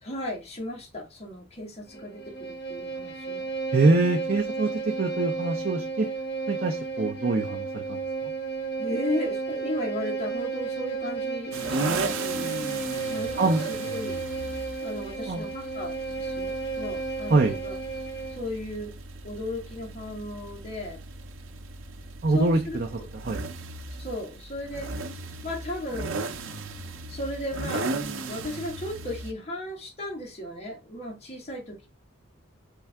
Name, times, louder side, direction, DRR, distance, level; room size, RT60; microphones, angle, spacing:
voice 1, 0.0-3.5 8.8-12.2 13.0-14.2 14.8-17.7 18.3-18.9 19.2-21.0 22.3-22.8 24.0-24.9 25.4-26.2 27.1-28.0 28.3-31.9, left 1 dB, 30° left, 1.5 m, -35 dB
Bowed string instrument, 1.9-18.5, right 4 dB, 50° left, 1.1 m, -33 dB
voice 2, 3.7-6.1 6.5-8.0 13.4-13.6 15.3-15.4 17.3-17.6 22.2-22.9 23.2-23.4, right 3 dB, 50° right, 0.6 m, -24 dB
sound 1, 11.5-29.3, right 3 dB, 90° right, 0.6 m, -36 dB
4.5 x 3.4 x 3.4 m
head